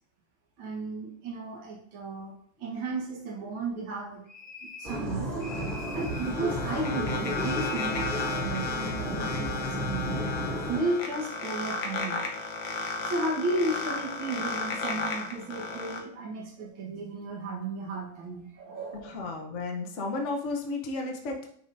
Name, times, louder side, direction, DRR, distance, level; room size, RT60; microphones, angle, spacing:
voice 1, 0.6-4.2 4.6-5.3 5.9-10.2 10.7-12.3 13.0-19.1, right 2 dB, 70° right, -3 dB, 2.1 m, -34 dB
sound 1, 4.3-5.1 5.4-6.4 7.3-8.4, left 3 dB, 35° left, 1.9 m, -43 dB
sound 2, 4.8-10.8, equal, 35° right, 2.4 m, -33 dB
sound 3, 5.5-16.0, left 4 dB, 70° left, 1.7 m, -34 dB
voice 2, 19.0-21.4, left 3 dB, 55° left, 1 dB, 0.8 m, -33 dB
10.0 x 3.5 x 2.6 m, 0.64 s
omnidirectional pair, 2.3 m